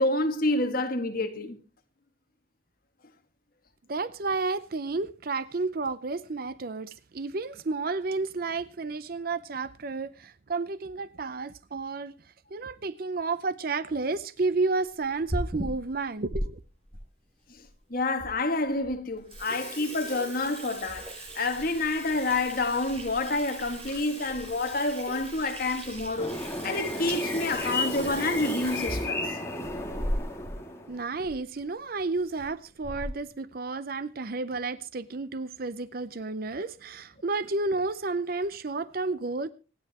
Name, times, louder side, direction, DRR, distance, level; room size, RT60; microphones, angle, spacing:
voice 1, 0.0-1.6 17.9-29.4, left 2 dB, 45° left, 1.9 m, -28 dB
voice 2, 3.9-12.1 12.5-16.6 30.9-39.5, right 3 dB, 50° right, 0.6 m, -31 dB
Water tap faucet / Sink (filling or washing), 15.0-16.4 16.9-17.0 17.7-17.8 18.2-18.3 18.7-18.9 19.2-30.6 30.9-31.0 31.2-31.4 32.2-32.4 32.8-33.3, equal, 30° right, 6.3 m, -37 dB
sound 1, 26.2-31.0, left 2 dB, 15° left, 2.3 m, -33 dB
25.5 x 9.9 x 3.0 m
head